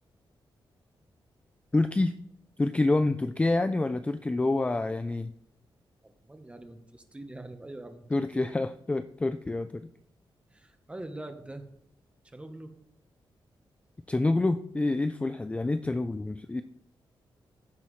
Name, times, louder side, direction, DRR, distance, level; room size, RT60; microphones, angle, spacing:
voice 1, 1.7-2.1 2.6-5.3 8.1-9.9 14.1-16.6, left 2 dB, 15° left, 10 dB, 0.3 m, -27 dB
voice 2, 6.0-8.0 8.3-8.5 10.5-11.7 12.3-12.7, right 1 dB, 15° right, 6 dB, 1.0 m, -44 dB
16.0 x 5.9 x 3.2 m, 0.71 s
wide cardioid pair, 135°, 9 cm